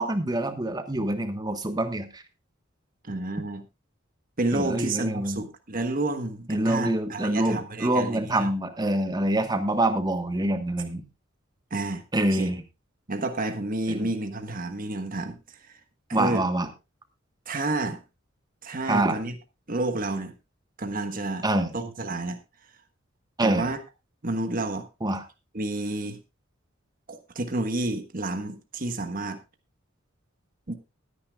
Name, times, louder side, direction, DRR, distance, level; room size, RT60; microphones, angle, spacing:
voice 1, 0.0-2.2 4.5-5.4 6.5-11.0 12.1-12.6 13.9-14.1 16.1-16.7 18.9-19.2 21.4-21.7 23.4-23.7 25.0-25.2, right 1 dB, 20° right, 8 dB, 1.3 m, -26 dB
voice 2, 3.0-3.6 4.4-8.5 11.7-12.0 12.3-12.5 13.1-15.4 15.7-15.8 16.2-16.4 17.5-18.0 18.6-19.4 19.7-20.3 20.8-21.5 21.7-22.4 23.4-23.8 24.2-24.9 25.5-26.2 27.1-29.4 30.7-30.8, right 2 dB, 45° right, 7 dB, 1.4 m, -30 dB
19.5 x 9.8 x 2.4 m, 0.26 s
head